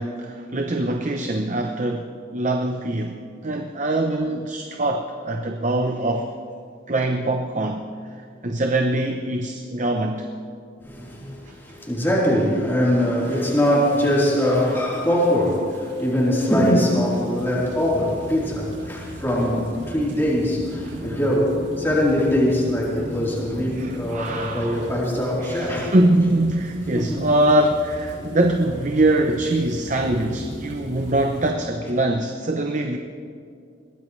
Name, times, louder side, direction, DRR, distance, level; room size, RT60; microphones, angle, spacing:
voice 1, 0.0-3.2 3.4-6.3 6.9-7.9 8.4-10.3 11.5-11.6 20.9-21.0 23.7-24.9 25.4-33.0, right 1 dB, 40° right, 4 dB, 0.8 m, -23 dB
voice 2, 10.8-25.9 26.9-27.2 30.1-30.2, equal, 10° left, -6 dB, 3.8 m, -22 dB
sound 1, 13.2-31.5, right 1 dB, 70° right, 2.3 m, -39 dB
22.0 x 18.0 x 3.3 m, 2.3 s
head